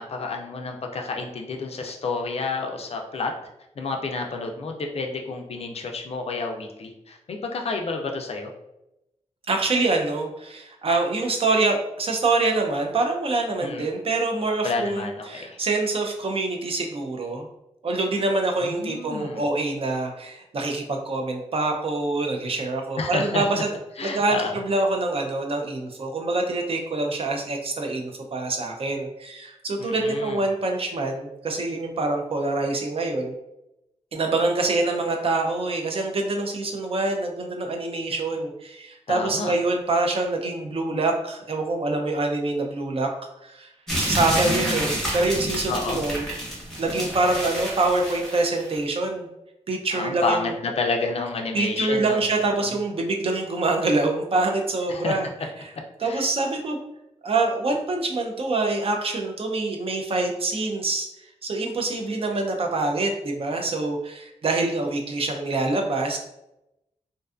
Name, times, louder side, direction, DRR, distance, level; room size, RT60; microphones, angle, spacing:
voice 1, 0.0-3.3 3.8-8.5 13.6-13.9 14.6-15.6 18.6-19.4 23.0-23.6 24.0-24.6 29.8-30.4 39.1-39.6 44.3-45.0 45.7-46.1 49.9-52.2 52.5-52.7 54.9-55.2 56.0-56.3, left 3 dB, 60° left, 3 dB, 0.3 m, -30 dB
voice 2, 9.5-17.5 17.8-23.8 24.0-33.3 34.1-43.1 43.4-43.7 44.0-46.3 46.8-49.3 49.7-50.5 51.5-55.3 56.0-56.8 57.2-61.1 61.4-66.2, right 2 dB, 55° right, 3 dB, 0.4 m, -25 dB
sound 1, 43.9-48.8, equal, 5° left, 0.7 m, -29 dB
2.5 x 2.3 x 2.4 m, 0.88 s
wide cardioid pair, 145°, 12 cm